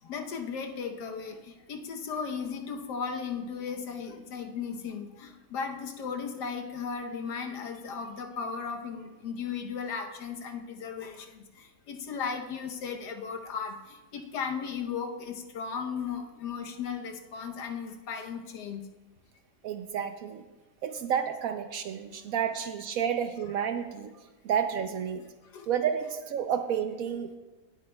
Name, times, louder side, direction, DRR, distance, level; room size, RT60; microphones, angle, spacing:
voice 1, 0.0-18.9 25.4-25.7, left 6 dB, 80° left, 4 dB, 1.5 m, -36 dB
voice 2, 19.6-20.4 20.8-24.1 24.4-25.2 25.7-27.4, right 8 dB, 70° right, 8 dB, 0.9 m, -30 dB
18.0 x 8.6 x 2.2 m, 1.1 s
omnidirectional pair, 1.8 m